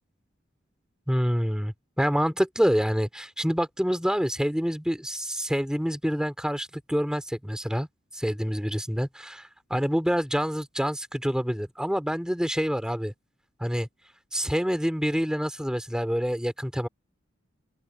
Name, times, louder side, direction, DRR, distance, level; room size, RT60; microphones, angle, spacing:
voice 1, 1.1-7.9 8.1-13.1 13.6-13.9 14.3-16.9, equal, 5° right, 2.9 m, -27 dB
open air
head